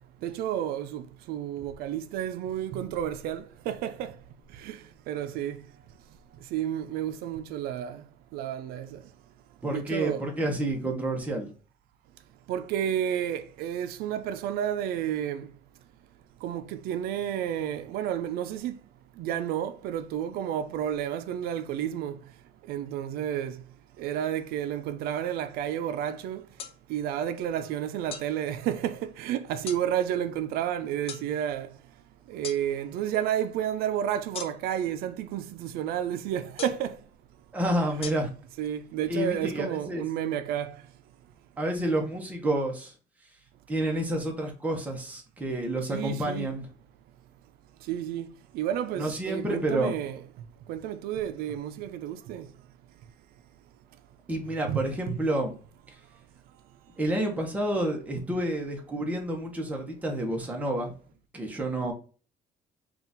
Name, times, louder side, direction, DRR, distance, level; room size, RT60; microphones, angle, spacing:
voice 1, 0.2-4.1 4.6-4.8 5.1-5.6 6.5-8.0 8.3-9.0 9.7-10.3 12.5-15.5 16.4-18.8 19.2-22.2 22.7-23.6 24.0-26.4 26.9-31.7 32.3-37.0 38.6-40.8 45.9-46.6 47.9-48.3 48.5-50.2 50.7-52.5 54.7-55.2, right 10 dB, 80° right, 0.4 m, -31 dB
voice 2, 9.6-11.5 37.5-38.3 39.1-40.0 41.6-42.9 43.7-46.7 49.0-50.0 54.3-55.5 57.0-60.9 61.3-61.9, right 1 dB, 10° right, 0.8 m, -29 dB
sound 1, 26.6-26.8 28.1-28.3 29.7-29.8 31.1-31.3 32.4-32.6 34.3-34.8 36.6-36.9 38.0-38.1, left 7 dB, 40° left, 0.4 m, -37 dB
3.8 x 2.4 x 3.9 m
cardioid pair, 170°, 16 cm